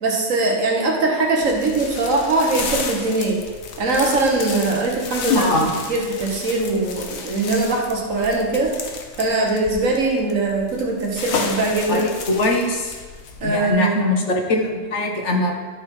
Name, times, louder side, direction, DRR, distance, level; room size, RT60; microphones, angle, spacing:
voice 1, 0.0-3.4 3.8-5.4 5.9-8.7 9.2-12.0 13.4-14.1, right 2 dB, 75° right, -1 dB, 1.7 m, -21 dB
sound 1, 1.4-13.7, left 4 dB, 85° left, 1.3 m, -32 dB
voice 2, 5.3-5.7 11.9-12.9 13.4-15.5, left 2 dB, 60° left, 1 dB, 1.3 m, -21 dB
11.5 x 4.4 x 4.9 m, 1.4 s
omnidirectional pair, 1.4 m